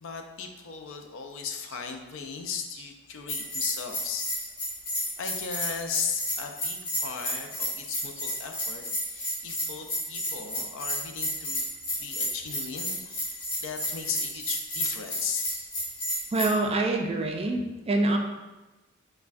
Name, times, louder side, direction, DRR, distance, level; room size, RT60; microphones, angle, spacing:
voice 1, 0.0-4.3 5.2-11.6 11.9-15.5, left 6 dB, 65° left, 5 dB, 0.4 m, -36 dB
Bell, 3.3-16.5, left 1 dB, 50° left, 1.1 m, -32 dB
voice 2, 16.3-18.2, right 2 dB, 30° right, 3 dB, 0.3 m, -25 dB
5.6 x 2.1 x 2.5 m, 1.1 s
head